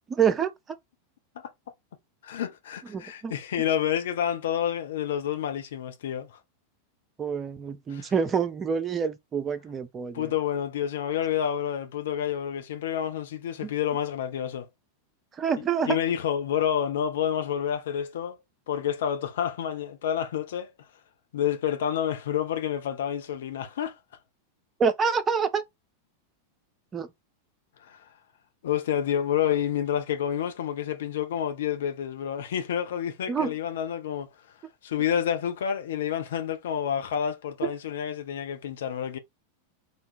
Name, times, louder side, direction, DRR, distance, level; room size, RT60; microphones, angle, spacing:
voice 1, 0.1-0.8 2.9-3.3 7.2-10.3 13.6-13.7 15.3-16.0 24.8-25.6 26.9-27.1 33.3-33.5 37.6-37.7, right 6 dB, 20° right, 0.8 m, -27 dB
voice 2, 2.2-6.4 7.9-8.1 10.1-14.7 15.9-18.4 18.7-20.7 21.3-23.9 27.8-28.0 28.6-34.3 34.8-39.2, left 9 dB, 60° left, 0.7 m, -29 dB
3.7 x 3.3 x 4.2 m
figure-of-eight pair, 90°, 0 cm